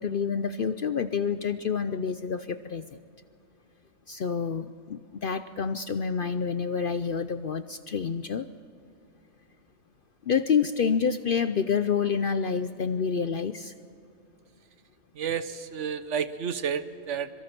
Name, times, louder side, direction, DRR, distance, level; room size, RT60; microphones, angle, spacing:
voice 1, 0.0-2.8 4.1-8.5 10.3-13.7, left 6 dB, 55° left, 11 dB, 0.6 m, -28 dB
voice 2, 15.2-17.4, right 7 dB, 60° right, 12 dB, 1.3 m, -31 dB
25.5 x 23.5 x 5.9 m, 2.8 s
omnidirectional pair, 1.4 m